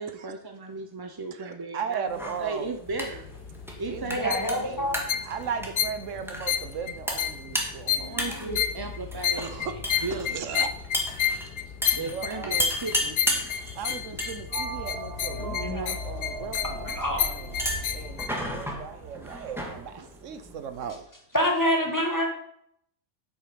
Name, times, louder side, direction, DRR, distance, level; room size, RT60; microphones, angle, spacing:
voice 1, 0.0-3.3 3.8-4.4 4.7-4.9 8.0-10.6 11.9-13.5 13.9-14.2 20.0-20.1, right 3 dB, 30° right, 4 dB, 0.5 m, -36 dB
voice 2, 1.4-2.7 3.9-4.8 5.3-8.1 9.4-9.7 10.1-10.7 12.0-12.6 13.8-17.4 17.9-21.0, right 7 dB, 85° right, 10 dB, 1.2 m, -36 dB
sound 1, 2.1-20.9, equal, ahead, 1.7 m, -35 dB
sound 2, 2.9-18.3, left 9 dB, 60° left, 0.8 m, -31 dB
voice 3, 4.1-5.0 7.9-8.6 15.3-16.0 16.6-17.2 21.3-22.3, equal, 15° left, 1 dB, 1.7 m, -28 dB
sound 3, 14.5-19.9, right 4 dB, 55° right, 1.7 m, -40 dB
8.5 x 7.9 x 5.1 m, 0.72 s
omnidirectional pair, 1.3 m